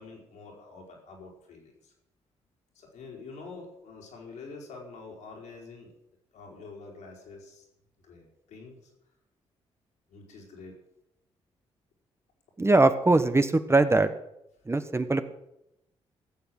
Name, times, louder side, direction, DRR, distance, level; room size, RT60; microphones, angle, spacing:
voice 1, 0.0-1.9 2.7-5.9 6.3-7.7 8.0-8.9 10.1-10.7, left 4 dB, 80° left, -1 dB, 4.5 m, -46 dB
voice 2, 12.6-14.1 14.7-15.3, right 2 dB, 20° right, 10 dB, 1.2 m, -22 dB
15.5 x 7.1 x 7.8 m, 0.84 s
supercardioid pair, 55°, 12 cm